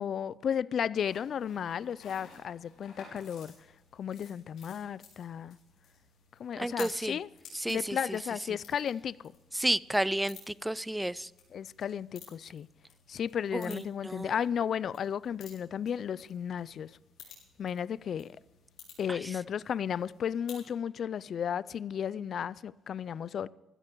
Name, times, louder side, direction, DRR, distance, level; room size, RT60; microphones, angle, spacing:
voice 1, 0.0-3.5 3.9-5.6 6.4-7.3 7.7-9.2 11.5-12.7 13.1-16.9 17.6-18.4 19.0-23.5, left 8 dB, 60° left, 0.4 m, -34 dB
sound 1, 0.9-20.7, left 6 dB, 80° left, 5.9 m, -55 dB
voice 2, 6.6-7.2 7.5-8.2 9.5-11.3 13.5-14.3 19.1-19.3, right 1 dB, 5° right, 0.4 m, -32 dB
15.5 x 13.5 x 4.6 m
cardioid pair, 90°, 0 cm